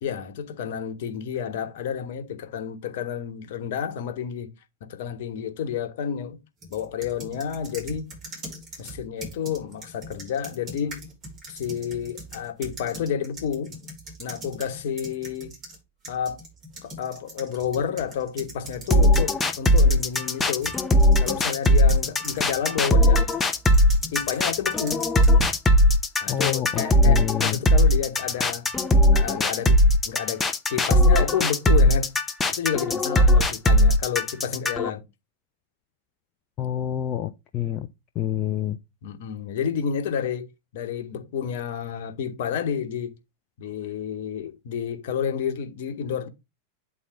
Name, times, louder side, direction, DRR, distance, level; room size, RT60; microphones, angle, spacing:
voice 1, 0.0-4.5 4.8-6.4 6.7-8.1 8.8-11.1 11.5-13.8 14.2-15.5 16.1-16.4 16.8-20.8 21.2-23.3 24.1-25.0 26.2-28.7 29.1-29.8 30.0-32.1 32.5-35.0 39.0-40.5 40.7-43.1 43.6-46.3, left 8 dB, 55° left, 1.3 m, -30 dB
sound 1, 6.6-15.8 16.0-22.7 23.3-25.6, right 1 dB, 30° right, 5.0 m, -41 dB
sound 2, 18.9-34.9, left 1 dB, 15° left, 0.9 m, -19 dB
voice 2, 26.3-27.6 36.6-37.9 38.2-38.8, left 11 dB, 35° left, 0.6 m, -28 dB
9.1 x 4.1 x 3.7 m
figure-of-eight pair, 90°, 0 cm